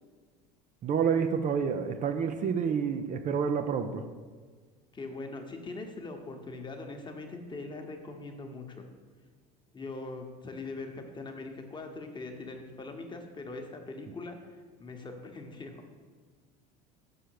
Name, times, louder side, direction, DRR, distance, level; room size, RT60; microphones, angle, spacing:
voice 1, 0.8-4.0, right 6 dB, 40° right, 7 dB, 0.5 m, -28 dB
voice 2, 4.9-8.8 9.7-15.8, left 3 dB, 20° left, 4 dB, 1.1 m, -41 dB
6.5 x 5.6 x 4.7 m, 1.5 s
hypercardioid pair, 85°, 21 cm